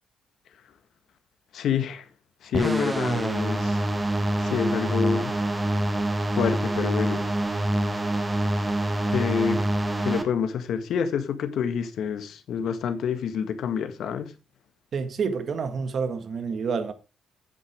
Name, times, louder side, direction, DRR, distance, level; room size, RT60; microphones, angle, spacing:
voice 1, 1.5-2.0 2.4-3.8 4.5-5.3 6.4-7.2 9.1-9.7 10.0-14.3, left 7 dB, 70° left, 1.6 m, -27 dB
sound 1, 2.5-10.2, right 1 dB, 15° right, 1.7 m, -26 dB
voice 2, 14.9-16.9, right 5 dB, 55° right, 1.7 m, -28 dB
9.5 x 8.3 x 3.7 m
cardioid pair, 90°, 0 cm